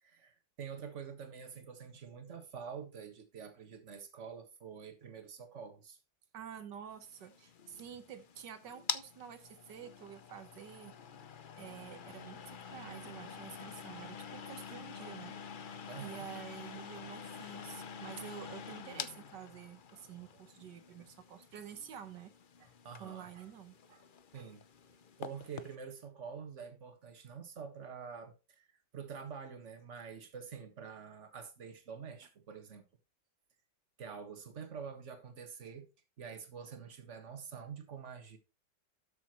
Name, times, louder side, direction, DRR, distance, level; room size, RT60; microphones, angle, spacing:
voice 1, 0.0-6.0 15.9-16.3 22.8-23.3 24.3-24.6 25.2-32.8 34.0-35.9 36.2-38.4, right 6 dB, 40° right, 1.9 m, -47 dB
voice 2, 6.3-10.9 11.5-15.3 15.7-22.3 22.6-24.1 24.4-24.5, right 8 dB, 75° right, 1.7 m, -49 dB
sound 1, 7.0-25.8, left 7 dB, 85° left, 0.4 m, -47 dB
13.0 x 6.9 x 3.0 m
omnidirectional pair, 1.9 m